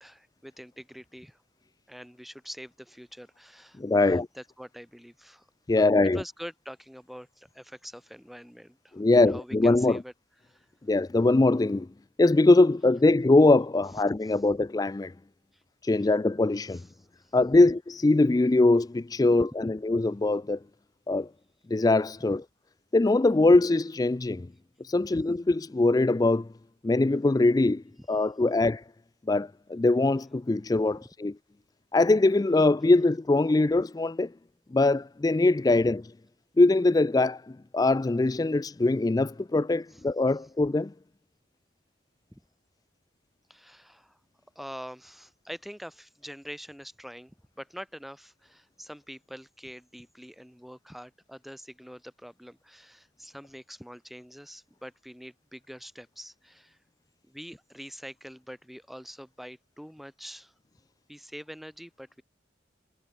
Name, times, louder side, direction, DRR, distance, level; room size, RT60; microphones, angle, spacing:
voice 1, 0.0-1.4 1.9-5.5 5.8-10.1 10.4-10.7 14.3-14.4 15.5-15.6 16.7-17.3 28.2-28.3 39.9-40.0 42.3-42.4 43.5-44.2 44.6-56.8 57.3-60.5 61.1-62.2, equal, ahead, 4.3 m, -45 dB
voice 2, 3.8-4.3 5.7-6.2 8.9-10.0 10.9-11.9 12.2-15.1 15.8-16.8 17.3-20.6 21.1-21.3 21.7-22.4 22.9-24.5 24.8-26.5 26.8-28.8 29.3-31.3 31.9-34.3 34.7-36.1 36.6-40.9, left 2 dB, 20° left, 0.3 m, -22 dB
head